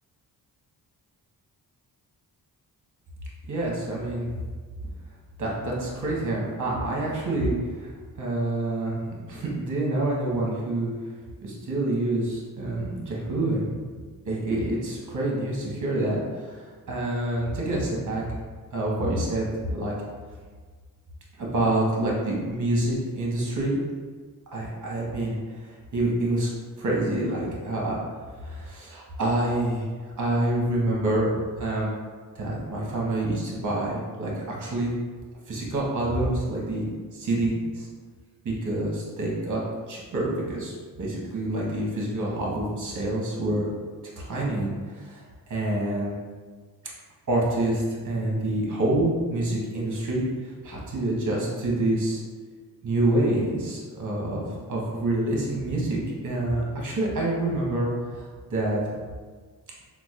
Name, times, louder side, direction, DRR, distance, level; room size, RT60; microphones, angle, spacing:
voice 1, 3.5-4.3 5.4-9.0 9.3-10.9 11.4-13.7 14.3-18.2 18.7-19.9 21.4-23.8 24.5-25.4 25.6-26.5 26.8-28.0 28.4-29.9 30.2-31.3 31.6-31.9 32.3-34.9 35.5-37.9 38.4-39.6 39.9-43.7 44.2-46.1 47.3-50.2 50.6-52.2 52.8-54.4 54.7-58.9, right 1 dB, 45° right, -4 dB, 1.1 m, -27 dB
3.9 x 2.4 x 2.4 m, 1.5 s
cardioid pair, 75°, 41 cm